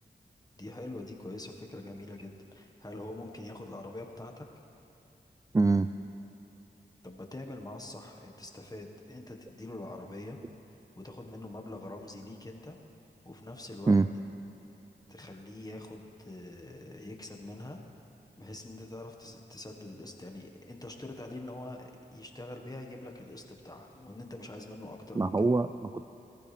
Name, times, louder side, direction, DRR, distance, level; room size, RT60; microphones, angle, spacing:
voice 1, 0.5-4.4 7.0-10.4 11.0-12.8 13.2-14.0 15.1-17.8 18.4-25.3, left 1 dB, 20° left, 2 dB, 1.6 m, -44 dB
voice 2, 5.5-5.9 13.9-14.1 25.2-26.1, right 3 dB, 20° right, 10 dB, 0.3 m, -24 dB
18.5 x 14.5 x 3.5 m, 2.8 s
cardioid pair, 50°, 18 cm